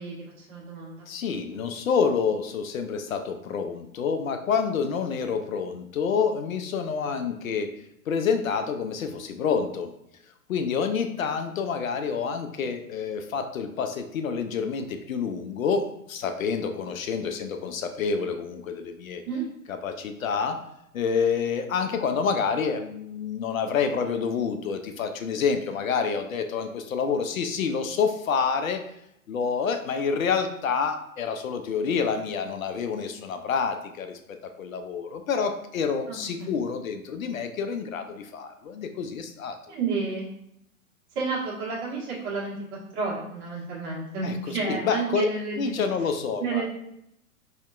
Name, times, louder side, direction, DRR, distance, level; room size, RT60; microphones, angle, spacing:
voice 1, 0.0-1.1 7.0-7.2 19.2-19.5 36.1-36.5 39.7-40.3 41.1-42.6 42.9-45.7 46.4-46.7, right 4 dB, 25° right, -6 dB, 1.4 m, -31 dB
voice 2, 1.1-7.7 8.1-9.9 10.5-19.2 19.7-20.6 20.9-28.8 29.3-34.2 34.6-39.6 44.2-45.3 45.6-46.7, left 6 dB, 70° left, 7 dB, 0.5 m, -28 dB
4.2 x 2.8 x 2.4 m, 0.78 s
figure-of-eight pair, 110°, 44 cm